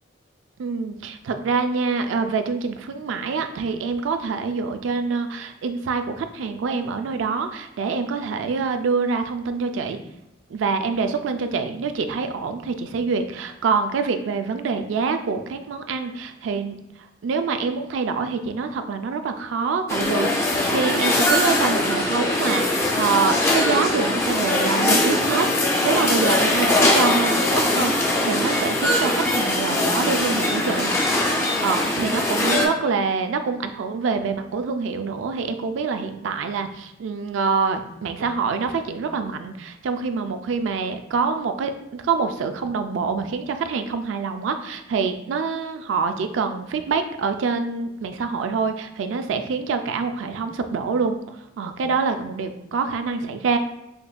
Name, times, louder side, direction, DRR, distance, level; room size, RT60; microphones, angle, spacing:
voice 1, 0.6-10.0 10.5-16.8 17.2-25.5 25.8-51.2 51.6-53.6, right 5 dB, 85° right, 8 dB, 0.3 m, -26 dB
sound 1, 19.9-32.7, left 1 dB, 15° left, 0.4 m, -21 dB
5.0 x 2.4 x 2.2 m, 0.89 s
head